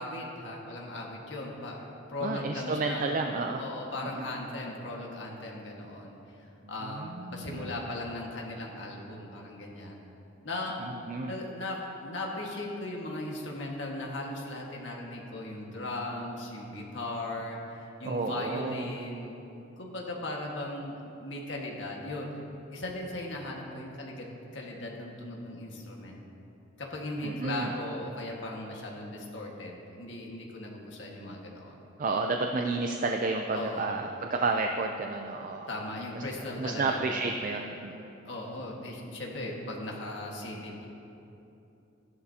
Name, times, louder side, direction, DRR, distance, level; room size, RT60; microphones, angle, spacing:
voice 1, 0.0-3.0 3.6-10.1 10.4-10.8 11.2-19.4 19.8-22.3 22.7-26.2 26.8-31.8 33.5-34.0 35.7-37.0 38.2-40.9, left 1 dB, 70° left, -1 dB, 1.6 m, -38 dB
voice 2, 2.2-3.6 4.1-4.2 6.9-7.7 10.8-11.3 18.0-18.9 27.2-27.7 32.0-35.7 36.1-36.2 36.6-38.1, right 3 dB, 45° right, 3 dB, 0.4 m, -31 dB
14.5 x 11.0 x 2.8 m, 2.9 s
head